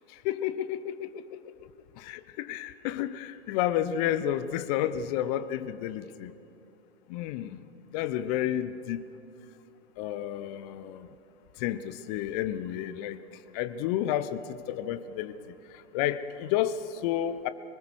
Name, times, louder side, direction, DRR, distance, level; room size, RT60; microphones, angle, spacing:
voice 1, 0.2-1.1 2.0-6.3 7.1-7.6 7.9-9.0 10.0-11.1 11.6-13.2 13.5-14.4 14.7-15.4 15.9-17.5, left 11 dB, 35° left, 13 dB, 1.0 m, -30 dB
27.5 x 20.0 x 6.3 m, 2.8 s
figure-of-eight pair, 110°, 33 cm